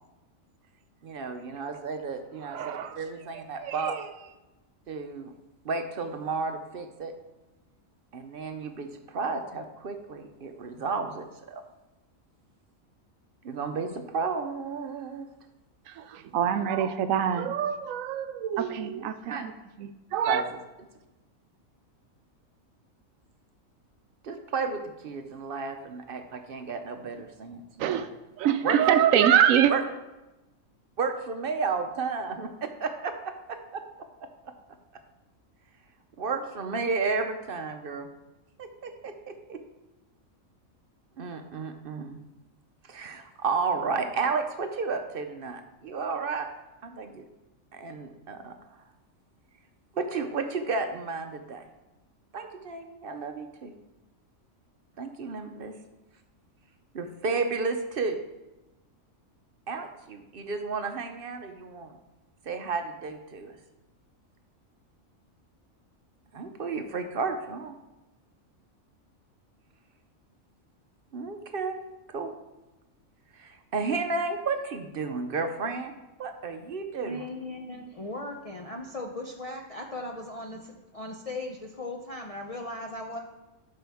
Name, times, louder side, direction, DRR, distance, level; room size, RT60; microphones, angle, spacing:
voice 1, 1.0-3.9 4.9-5.3 5.6-7.1 8.1-11.6 13.4-15.3 19.3-19.5 20.2-20.6 24.2-28.1 28.6-28.8 29.7-29.8 31.0-33.8 36.2-38.1 38.6-39.6 41.2-42.2 42.8-46.5 46.8-47.2 47.7-48.5 49.9-51.6 52.3-53.7 55.0-55.7 56.9-58.2 59.7-62.0 62.4-63.6 66.3-67.7 71.1-71.8 72.1-72.3 73.3-75.9 76.2-77.3, right 4 dB, 50° right, 6 dB, 0.7 m, -32 dB
voice 2, 2.5-2.9 3.6-4.0 16.0-19.5 19.8-20.4 27.8-28.1 28.4-29.7, right 9 dB, 75° right, 11 dB, 0.9 m, -25 dB
voice 3, 77.0-83.2, left 2 dB, 45° left, 0 dB, 0.5 m, -38 dB
11.5 x 5.5 x 3.5 m, 1.0 s
omnidirectional pair, 1.4 m